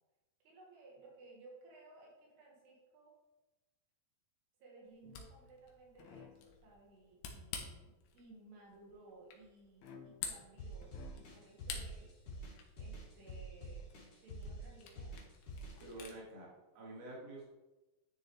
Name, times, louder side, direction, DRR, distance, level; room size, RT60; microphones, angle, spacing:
voice 1, 0.4-3.1 4.6-12.2 12.8-13.9 14.2-15.2 16.0-16.2, right 3 dB, 80° right, -2 dB, 3.9 m, -59 dB
Camera, 4.8-16.2, left 6 dB, 75° left, 2.9 m, -51 dB
sound 1, 5.0-5.6 6.0-6.6 9.8-10.4 10.8-11.5, left 7 dB, 90° left, 1.6 m, -56 dB
sound 2, 10.6-15.9, right 1 dB, 55° left, 3.7 m, -47 dB
voice 2, 15.8-17.4, right 2 dB, 45° right, -5 dB, 2.8 m, -49 dB
10.5 x 6.6 x 3.3 m, 1.1 s
omnidirectional pair, 4.7 m